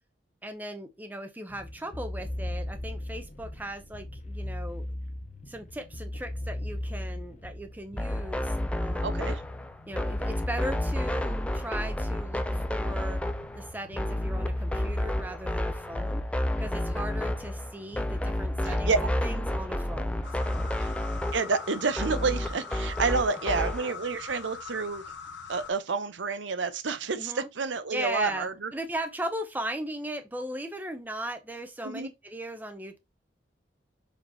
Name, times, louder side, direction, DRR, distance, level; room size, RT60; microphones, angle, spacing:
voice 1, 0.4-4.9 5.5-8.5 8.8-9.3 9.9-13.2 13.6-16.2 16.6-20.6 22.1-22.2 27.2-27.5 27.9-33.0, right 1 dB, 10° right, 0.8 m, -38 dB
sound 1, 1.5-20.9, left 1 dB, 40° left, 0.9 m, -37 dB
sound 2, 8.0-23.9, left 1 dB, 5° left, 0.4 m, -31 dB
voice 2, 9.0-9.4 18.7-19.1 20.8-20.9 21.3-25.0 25.5-28.7 31.8-32.1, right 4 dB, 75° right, 0.8 m, -29 dB
sound 3, 20.2-25.7, left 5 dB, 70° left, 1.0 m, -42 dB
7.2 x 3.1 x 4.2 m
head